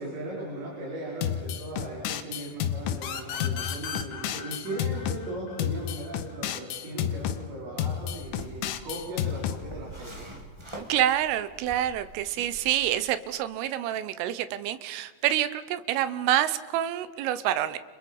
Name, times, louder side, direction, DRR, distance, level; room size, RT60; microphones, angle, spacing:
voice 1, 0.0-10.3, right 1 dB, 60° right, -5 dB, 7.3 m, -38 dB
sound 1, 1.2-3.0 3.4-5.2 5.6-7.4 7.8-9.6, left 10 dB, 80° left, 3.5 m, -30 dB
sound 2, 3.0-6.4, left 8 dB, 60° left, 2.9 m, -37 dB
sound 3, 8.1-13.1, right 1 dB, 15° right, 0.9 m, -46 dB
voice 2, 10.8-17.8, right 12 dB, 90° right, 13 dB, 3.6 m, -27 dB
30.0 x 29.0 x 5.5 m, 1.4 s
omnidirectional pair, 5.6 m